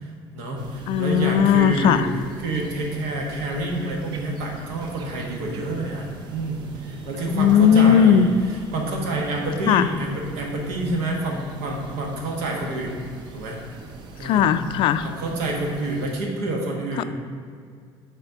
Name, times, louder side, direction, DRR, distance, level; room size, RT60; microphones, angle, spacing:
voice 1, 0.0-2.1 2.4-8.3 8.7-13.0 13.3-13.6 14.2-14.4 15.0-17.0, right 2 dB, 85° right, 0 dB, 1.5 m, -28 dB
sound 1, 0.6-16.1, right 3 dB, 50° right, 0.7 m, -42 dB
voice 2, 0.9-2.1 7.2-8.3 9.6-9.9 14.2-15.1 17.0-17.1, left 8 dB, 55° left, 12 dB, 0.3 m, -17 dB
6.7 x 4.3 x 5.7 m, 2.1 s
cardioid pair, 145°, 10 cm